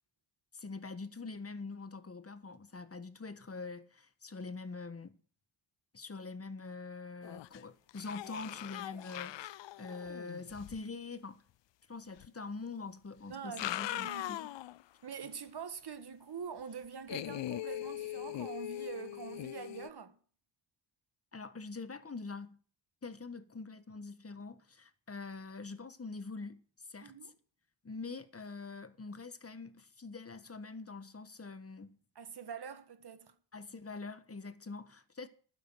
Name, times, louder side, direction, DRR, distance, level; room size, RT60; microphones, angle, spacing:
voice 1, 0.5-5.2 5.9-11.4 11.9-14.6 21.3-22.6 23.0-27.3 27.8-32.0 33.5-35.3, left 4 dB, 30° left, 1.5 m, -44 dB
sound 1, 7.2-7.6 7.9-10.8 12.2-12.3 13.3-14.8 15.2-15.3 17.1-19.9, left 15 dB, 65° left, 0.6 m, -41 dB
voice 2, 13.3-14.3 15.0-20.2 27.0-27.3 32.2-33.3, right 6 dB, 55° right, 1.8 m, -45 dB
11.5 x 9.5 x 6.4 m
cardioid pair, 55°, 47 cm